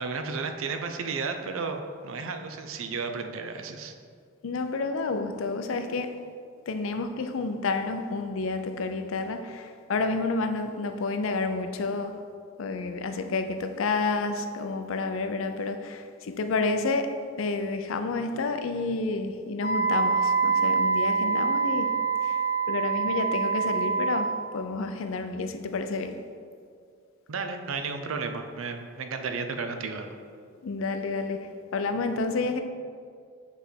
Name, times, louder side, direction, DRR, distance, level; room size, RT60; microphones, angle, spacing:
voice 1, 0.0-3.9 27.3-30.2, right 4 dB, 85° right, 6 dB, 0.6 m, -33 dB
voice 2, 4.4-6.2 6.7-12.2 12.6-22.4 22.7-26.3 30.6-32.6, left 3 dB, 75° left, 7 dB, 0.5 m, -30 dB
Wind instrument woodwind instrument, 19.6-24.4, right 5 dB, 50° left, 0.8 m, -25 dB
7.0 x 3.3 x 4.4 m, 2.2 s
head